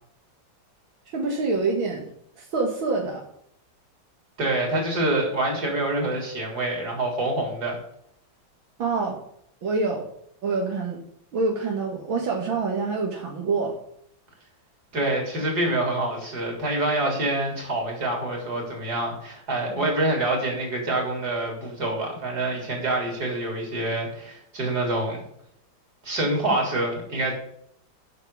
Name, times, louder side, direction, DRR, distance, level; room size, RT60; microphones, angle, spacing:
voice 1, 1.1-2.0 2.4-3.2 8.8-9.2 9.6-10.0 10.4-11.0 11.3-13.8 19.7-19.9, right 3 dB, 85° right, 0 dB, 2.5 m, -26 dB
voice 2, 4.4-7.8 14.9-25.2 26.0-27.3, right 2 dB, 50° right, 0 dB, 4.1 m, -26 dB
9.4 x 6.5 x 8.3 m, 0.70 s
omnidirectional pair, 2.1 m